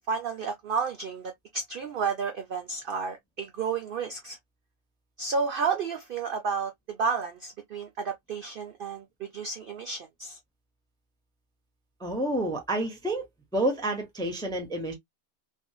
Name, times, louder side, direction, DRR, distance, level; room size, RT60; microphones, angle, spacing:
voice 1, 0.1-4.4 5.2-10.4, right 5 dB, 65° right, 0.5 m, -31 dB
voice 2, 12.0-13.3 13.5-14.9, right 1 dB, 5° left, 0.4 m, -29 dB
2.6 x 2.5 x 2.2 m
omnidirectional pair, 1.4 m